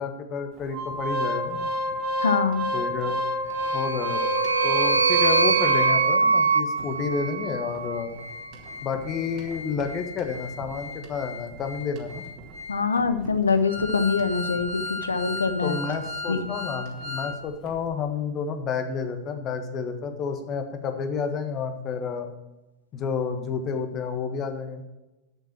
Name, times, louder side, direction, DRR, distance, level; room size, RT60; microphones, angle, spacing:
voice 1, 0.0-1.6 2.7-3.2 3.7-4.2 4.6-8.1 8.8-12.2 15.6-22.3 22.9-24.8, left 5 dB, 30° left, 7 dB, 1.3 m, -30 dB
Organ, 0.7-6.3 6.8-6.9 7.1-7.3 7.7-17.3 17.7-17.8, left 1 dB, 40° right, 1.8 m, -32 dB
voice 2, 2.2-2.7 12.7-15.8 16.3-16.5, left 5 dB, 75° left, 11 dB, 0.7 m, -24 dB
sound 1, 3.6-8.0, right 4 dB, 80° right, 0.8 m, -23 dB
7.8 x 7.6 x 6.0 m, 1.0 s
figure-of-eight pair, 90°, 0 cm